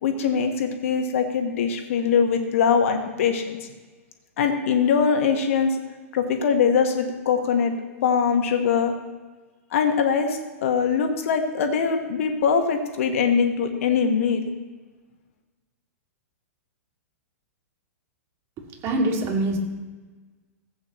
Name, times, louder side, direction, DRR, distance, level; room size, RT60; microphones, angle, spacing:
voice 1, 0.0-3.6 4.4-5.8 6.1-7.8 8.0-8.9 9.7-14.5, left 6 dB, 60° left, 5 dB, 1.5 m, -22 dB
voice 2, 18.8-19.6, right 2 dB, 35° right, 1 dB, 2.5 m, -23 dB
15.0 x 8.4 x 3.1 m, 1.3 s
hypercardioid pair, 110°, 8 cm